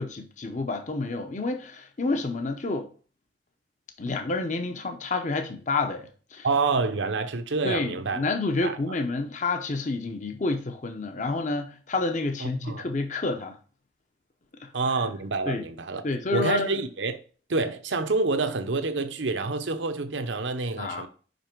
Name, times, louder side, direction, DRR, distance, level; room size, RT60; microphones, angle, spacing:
voice 1, 0.0-2.9 4.0-6.5 7.6-13.6 14.6-14.7 15.5-15.6 16.0-16.7 20.8-21.1, left 3 dB, 40° left, 0.7 m, -29 dB
voice 2, 6.4-8.3 8.6-8.8 12.4-12.9 14.7-16.0 16.3-17.2 17.5-21.1, right 3 dB, 85° right, 0.8 m, -27 dB
5.3 x 5.3 x 4.5 m
head